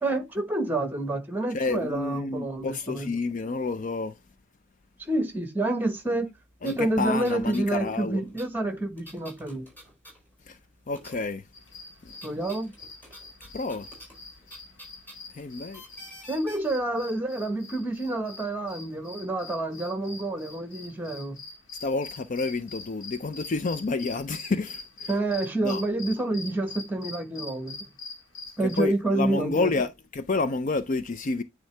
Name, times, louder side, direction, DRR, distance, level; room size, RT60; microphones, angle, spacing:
voice 1, 0.0-3.1 5.0-6.3 6.6-9.7 12.2-12.7 16.3-21.4 25.1-27.9 28.6-29.7, right 2 dB, 10° right, 1.2 m, -28 dB
voice 2, 1.5-4.1 6.6-8.2 10.5-10.6 10.9-11.4 13.5-13.9 15.4-15.8 21.8-25.1 25.6-25.8 28.8-31.4, left 3 dB, 40° left, 0.4 m, -29 dB
sound 1, 6.2-6.3 6.6-10.6 10.9-11.5 11.8-16.6, equal, 10° left, 3.8 m, -49 dB
sound 2, 11.5-28.8, left 3 dB, 65° left, 2.0 m, -44 dB
9.2 x 3.8 x 3.3 m
head